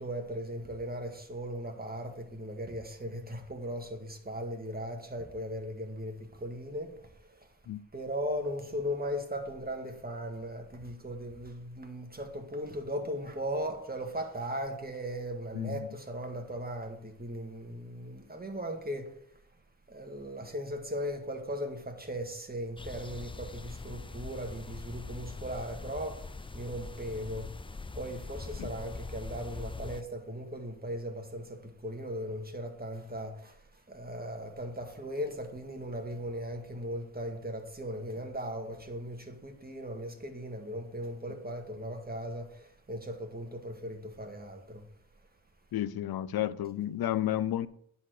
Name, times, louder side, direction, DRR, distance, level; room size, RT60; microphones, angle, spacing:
voice 1, 0.0-7.5 7.9-19.2 19.9-27.5 28.0-44.8, equal, 25° right, 1.9 m, -38 dB
voice 2, 15.5-15.9 28.6-28.7 45.7-47.7, left 12 dB, 80° left, 0.5 m, -32 dB
sound 1, 22.8-30.0, left 3 dB, 15° left, 0.5 m, -42 dB
9.8 x 4.3 x 6.4 m
cardioid pair, 50°, 36 cm